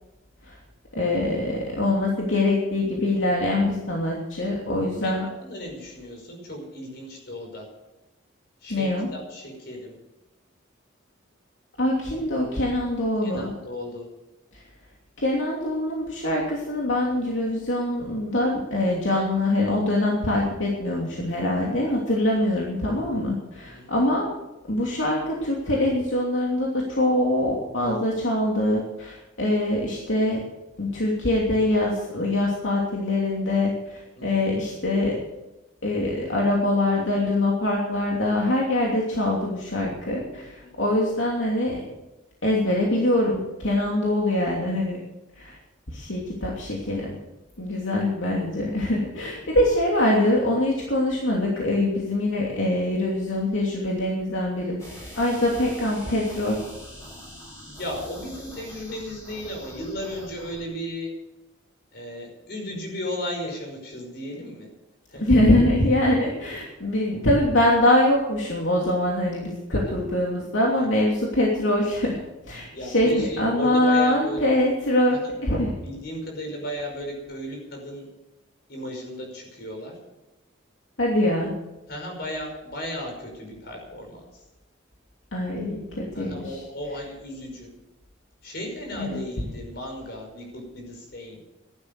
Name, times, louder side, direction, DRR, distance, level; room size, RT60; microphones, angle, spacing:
voice 1, 0.9-5.2 8.7-9.1 11.8-13.5 15.2-24.3 24.7-30.4 30.8-33.7 34.2-35.2 35.8-41.8 42.4-45.0 45.4-45.6 45.9-47.2 47.6-54.8 55.2-56.6 65.2-75.1 75.4-75.7 81.0-81.5 85.3-86.6 88.9-89.2, left 1 dB, 75° left, -2 dB, 2.9 m, -23 dB
voice 2, 5.0-7.7 8.6-10.0 13.2-14.1 23.6-23.9 34.2-34.5 40.4-40.7 57.7-61.1 61.9-64.7 65.1-65.4 69.8-70.0 70.8-71.0 72.7-74.5 75.1-75.3 75.8-78.1 78.7-80.0 81.9-84.4 86.1-87.7 88.4-91.4, equal, 55° left, 2 dB, 5.4 m, -35 dB
sound 1, 54.8-60.6, equal, 15° left, 6.5 m, -43 dB
15.5 x 11.5 x 6.7 m, 0.98 s
head